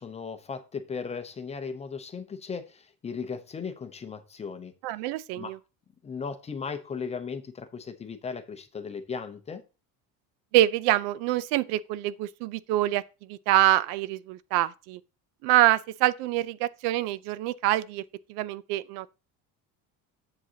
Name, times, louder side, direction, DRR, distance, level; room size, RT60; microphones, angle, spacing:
voice 1, 0.0-4.7 5.4-5.5 6.0-9.6, left 5 dB, 15° left, 0.6 m, -37 dB
voice 2, 4.8-5.6 10.5-15.0 15.4-18.0 18.3-19.1, right 15 dB, 80° right, 0.6 m, -25 dB
7.6 x 7.5 x 2.8 m
cardioid pair, 165°, 38 cm